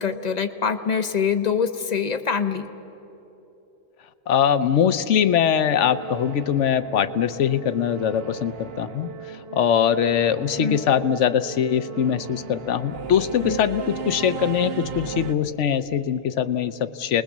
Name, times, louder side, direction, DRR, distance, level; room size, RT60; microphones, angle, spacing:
voice 1, 0.0-2.6 10.6-10.8 13.4-13.6, left 6 dB, 40° left, 10 dB, 0.7 m, -24 dB
voice 2, 4.3-17.2, left 8 dB, 60° left, 13 dB, 0.9 m, -22 dB
Singing / Musical instrument, 5.4-15.3, right 7 dB, 50° right, 0.9 m, -36 dB
29.5 x 20.5 x 7.3 m, 3.0 s
omnidirectional pair, 1.5 m